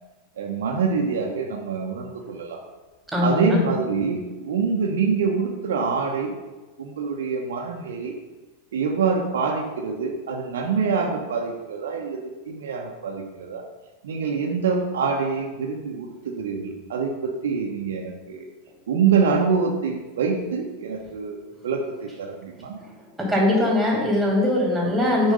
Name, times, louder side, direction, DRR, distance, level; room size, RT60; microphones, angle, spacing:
voice 1, 0.4-2.6 3.2-6.3 6.8-8.1 8.7-12.2 12.5-13.6 14.0-18.5 18.9-22.8, right 5 dB, 60° right, 1 dB, 1.0 m, -25 dB
voice 2, 3.1-3.6 23.2-25.3, left 1 dB, 5° right, -3 dB, 3.0 m, -21 dB
9.5 x 4.5 x 5.5 m, 1.2 s
figure-of-eight pair, 90°, 0 cm